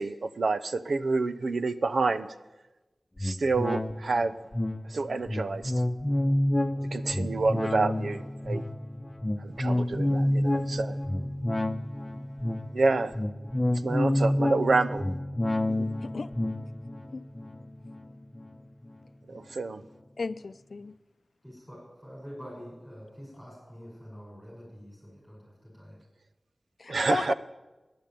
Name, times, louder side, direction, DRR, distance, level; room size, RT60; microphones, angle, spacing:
voice 1, 0.0-2.3 3.2-4.3 4.9-5.7 6.9-8.6 9.4-11.0 12.7-13.1 13.8-15.1 15.7-15.9 19.3-19.9 26.9-27.3, right 3 dB, 85° right, 0.7 m, -28 dB
sound 1, 3.2-18.9 19.3-19.4, left 1 dB, 25° left, 0.9 m, -29 dB
voice 2, 16.0-16.3 17.1-17.2 20.2-20.9 26.8-27.3, left 3 dB, 75° left, 0.5 m, -34 dB
voice 3, 21.4-26.0, equal, 5° right, 6.6 m, -46 dB
14.5 x 10.5 x 9.0 m
wide cardioid pair, 60°, 0 cm